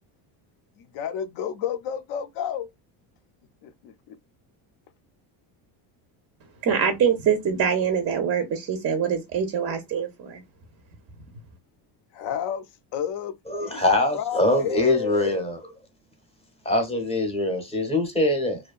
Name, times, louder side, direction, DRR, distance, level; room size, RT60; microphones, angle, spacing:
voice 1, 0.8-2.7 3.6-4.2 12.1-13.8 14.1-15.3, left 8 dB, 60° left, 0.5 m, -31 dB
voice 2, 6.6-10.4, right 7 dB, 30° right, 0.4 m, -24 dB
voice 3, 13.5-15.6 16.6-18.6, left 2 dB, 10° left, 0.7 m, -23 dB
2.6 x 2.2 x 2.3 m
cardioid pair, 135°, 49 cm